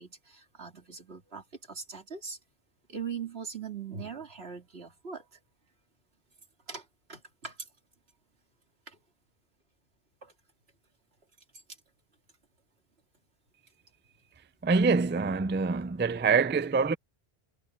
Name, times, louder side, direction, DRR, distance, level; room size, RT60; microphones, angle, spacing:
voice 1, 0.0-2.4 2.9-5.3 6.7-7.7 8.9-9.0 10.2-10.3, right 6 dB, 85° right, 2.8 m, -41 dB
voice 2, 14.6-17.0, right 4 dB, 20° right, 0.3 m, -25 dB
omnidirectional pair, 1.0 m